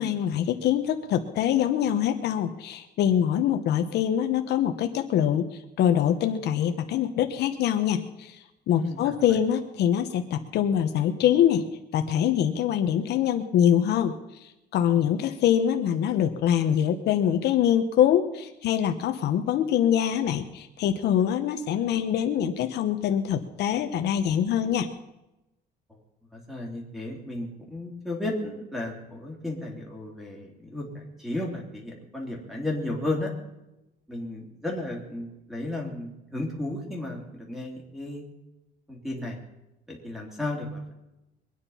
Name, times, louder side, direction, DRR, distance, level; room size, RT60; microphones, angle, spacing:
voice 1, 0.0-8.4 8.7-11.7 11.9-14.2 14.7-24.9, left 10 dB, 65° left, 7 dB, 1.1 m, -24 dB
voice 2, 8.7-9.4 26.3-33.3 34.1-38.3 38.9-39.4 39.9-40.9, left 2 dB, ahead, 0 dB, 3.2 m, -34 dB
23.0 x 9.8 x 5.7 m, 0.94 s
cardioid pair, 170°, 18 cm